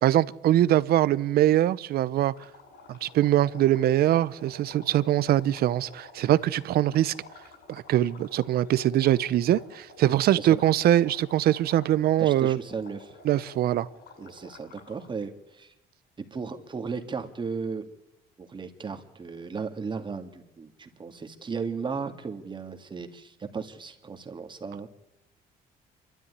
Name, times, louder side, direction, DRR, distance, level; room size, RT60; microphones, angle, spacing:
voice 1, 0.0-2.3 2.9-7.1 7.7-12.6 13.2-13.9, right 13 dB, 65° right, 18 dB, 0.8 m, -23 dB
sound 1, 2.3-15.1, left 3 dB, 65° left, 8.0 m, -51 dB
voice 2, 10.3-10.6 12.2-13.1 14.2-15.7 16.3-17.9 18.4-24.9, right 5 dB, 30° right, 6 dB, 2.2 m, -35 dB
27.5 x 13.0 x 9.6 m, 0.90 s
cardioid pair, 110°, 17 cm